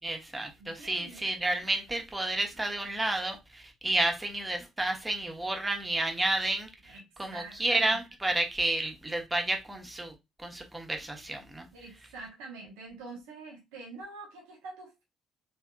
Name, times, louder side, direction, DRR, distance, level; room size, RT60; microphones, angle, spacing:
voice 1, 0.0-10.1 10.4-11.7, right 2 dB, 15° right, 1.1 m, -31 dB
voice 2, 0.6-1.3 6.8-8.0 11.7-15.0, right 3 dB, 70° right, 1.0 m, -46 dB
3.5 x 3.3 x 2.3 m
figure-of-eight pair, 45°, 0 cm